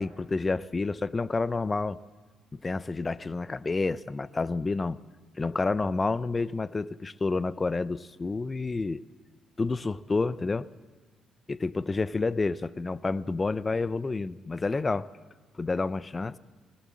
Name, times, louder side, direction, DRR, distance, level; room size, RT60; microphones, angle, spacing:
voice 1, 0.0-2.0 2.5-5.0 5.4-9.0 9.6-10.7 11.5-15.1 15.6-16.4, left 3 dB, 25° left, 17 dB, 0.6 m, -29 dB
20.5 x 17.0 x 7.6 m, 1.3 s
cardioid pair, 90°, 0 cm